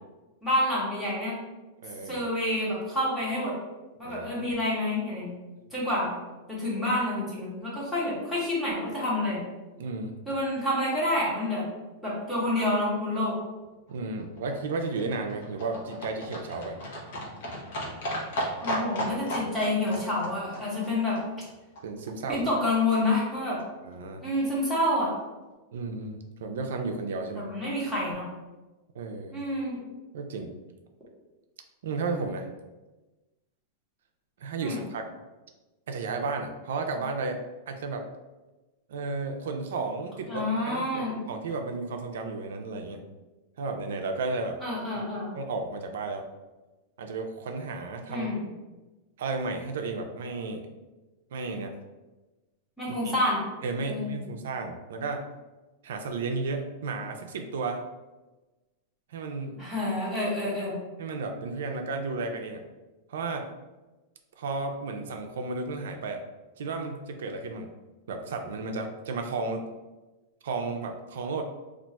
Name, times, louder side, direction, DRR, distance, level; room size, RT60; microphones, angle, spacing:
voice 1, 0.4-1.3 2.0-3.5 4.0-5.3 5.7-6.2 6.5-9.4 10.3-11.7 12.0-13.3 18.6-21.2 22.3-23.6 24.2-25.1 27.3-28.3 29.3-29.8 34.6-34.8 40.3-41.1 44.6-45.3 48.1-48.4 52.8-53.4 53.9-54.2 59.6-60.8, left 1 dB, 5° left, -7 dB, 0.8 m, -28 dB
voice 2, 1.8-2.3 4.0-4.5 9.8-10.2 13.9-16.8 21.8-22.5 23.8-24.3 25.7-27.5 28.9-29.4 30.1-30.5 31.8-32.5 34.4-35.1 35.9-37.4 37.7-38.0 38.9-43.0 43.6-44.6 45.3-46.2 47.0-48.3 49.2-50.7 51.3-51.7 52.9-53.1 53.6-55.2 55.8-57.8 59.1-59.6 61.0-62.6 63.1-63.5 64.4-66.2 66.6-67.7 68.1-69.7 70.4-71.4, right 3 dB, 80° right, 4 dB, 0.4 m, -33 dB
Livestock farm animals working animals, 13.9-22.1 22.4-22.5 22.7-22.8 23.0-23.1 23.3-23.4 23.6-23.7 23.9-24.0 24.2-24.3 24.6-24.7, equal, 50° left, 0.7 m, -35 dB
2.4 x 2.2 x 4.0 m, 1.1 s
supercardioid pair, 180°, 0 cm